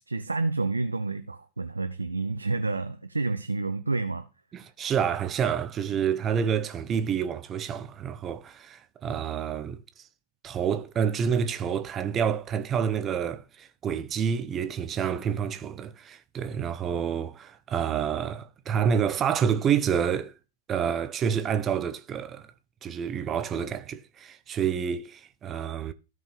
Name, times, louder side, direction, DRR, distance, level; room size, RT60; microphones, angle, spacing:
voice 1, 0.0-4.3, right 3 dB, 80° right, 0.6 m, -29 dB
voice 2, 4.5-10.0 10.4-20.3 20.7-22.5 22.8-25.9, right 7 dB, 25° right, 0.7 m, -28 dB
16.0 x 5.3 x 3.3 m
figure-of-eight pair, 95°, 0 cm